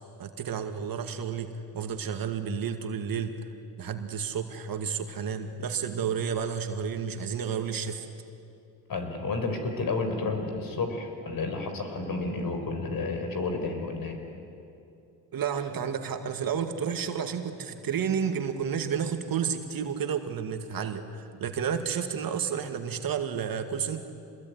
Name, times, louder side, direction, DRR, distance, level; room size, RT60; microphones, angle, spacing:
voice 1, 0.2-1.5 1.7-3.4 3.8-8.1 15.3-24.0, right 7 dB, 50° right, 6 dB, 2.2 m, -31 dB
voice 2, 8.9-14.2, left 3 dB, 45° left, 6 dB, 4.7 m, -31 dB
26.5 x 20.5 x 9.5 m, 2.7 s
supercardioid pair, 80°, 46 cm